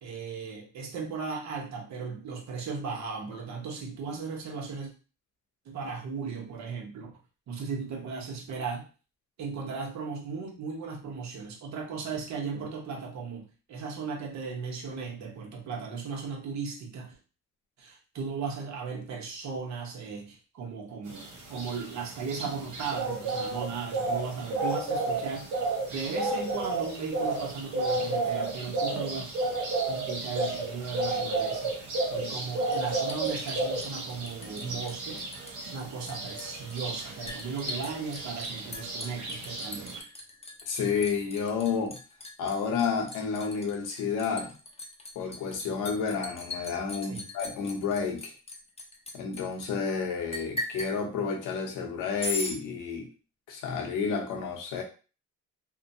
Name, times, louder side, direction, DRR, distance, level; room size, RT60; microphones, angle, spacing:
voice 1, 0.0-4.9 5.6-7.2 7.5-8.8 9.4-17.2 17.8-25.5 25.9-29.3 29.9-31.7 32.1-35.3 35.6-40.0 47.1-47.3, right 5 dB, 65° right, 1 dB, 0.9 m, -36 dB
sound 1, 21.1-40.0, right 2 dB, 85° right, 1.1 m, -32 dB
Liquid, 32.7-34.6 34.9-35.5 35.8-49.7 50.3-50.9 52.2-52.6, left 2 dB, 20° left, 0.6 m, -39 dB
voice 2, 40.7-42.0 42.4-44.5 45.1-48.3 49.1-53.1 53.5-54.8, left 5 dB, 90° left, 2 dB, 0.8 m, -30 dB
2.8 x 2.2 x 2.6 m, 0.34 s
cardioid pair, 90°, 30 cm